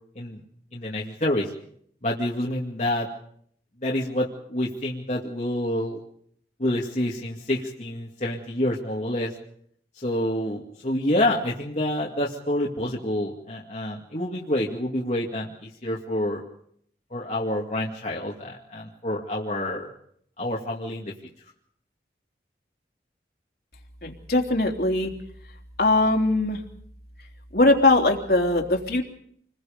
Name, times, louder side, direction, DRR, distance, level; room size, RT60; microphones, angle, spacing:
voice 1, 0.7-1.5 2.0-3.1 3.8-6.0 6.6-9.3 10.0-16.4 17.1-19.9 20.4-21.1, left 1 dB, 40° left, -4 dB, 2.4 m, -28 dB
voice 2, 24.0-25.1 25.8-26.6 27.5-29.0, left 2 dB, 60° left, 1 dB, 3.3 m, -21 dB
28.0 x 21.0 x 5.3 m, 0.67 s
head